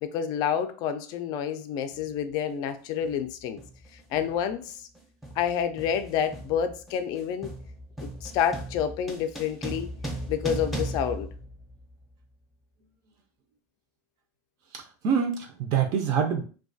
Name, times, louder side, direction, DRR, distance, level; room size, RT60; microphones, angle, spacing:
voice 1, 0.0-3.6 4.1-4.9 5.4-7.5 8.0-9.9 10.3-11.3, left 8 dB, 50° left, 0.3 m, -29 dB
sound 1, 1.9-2.1 3.0-3.3 3.6-12.1, right 1 dB, ahead, 0.5 m, -38 dB
voice 2, 14.7-16.4, right 7 dB, 45° right, 0.4 m, -26 dB
2.3 x 2.2 x 2.5 m
supercardioid pair, 125°, 9 cm